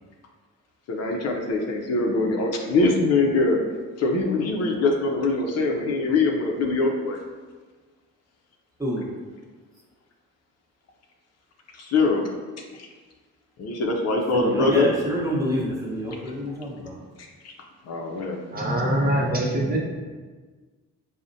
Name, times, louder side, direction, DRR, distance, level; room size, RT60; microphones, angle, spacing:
voice 1, 0.9-3.6 4.0-7.2 11.8-12.2 12.8-12.9 13.6-14.9 17.4-17.5 17.9-18.4, left 3 dB, 55° left, 1 dB, 0.5 m, -23 dB
voice 2, 14.3-17.0, equal, 10° right, -5 dB, 1.0 m, -27 dB
voice 3, 18.5-19.8, right 1 dB, 30° right, -2 dB, 0.7 m, -23 dB
4.8 x 2.1 x 2.6 m, 1.4 s
cardioid pair, 90°, 30 cm